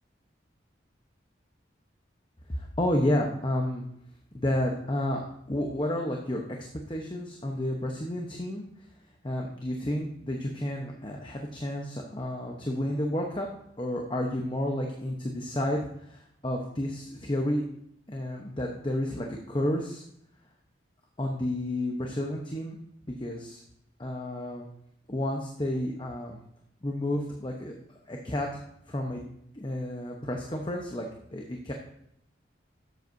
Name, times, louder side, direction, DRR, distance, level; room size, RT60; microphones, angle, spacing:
voice 1, 2.5-3.8 4.3-5.2 5.5-6.4 6.9-8.6 9.2-13.5 13.8-17.6 18.1-20.0 21.2-22.8 23.2-23.6 24.0-24.7 25.1-26.4 26.8-27.7 28.1-29.2 29.5-31.7, left 1 dB, 25° left, 1 dB, 0.9 m, -31 dB
12.0 x 8.0 x 2.7 m, 0.74 s
head